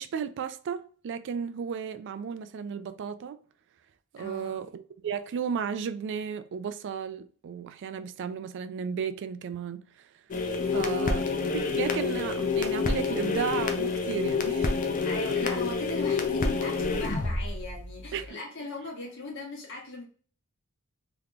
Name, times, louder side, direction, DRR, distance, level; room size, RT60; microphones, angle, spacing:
voice 1, 0.0-3.4 4.1-9.8 10.7-11.3 11.7-14.9 18.1-18.4, right 7 dB, 55° right, 0.3 m, -34 dB
voice 2, 4.2-4.6 10.7-11.2 15.0-20.0, left 2 dB, 60° left, 1.3 m, -38 dB
sound 1, 10.3-18.3, left 4 dB, 40° left, 0.5 m, -28 dB
3.5 x 2.9 x 2.4 m
head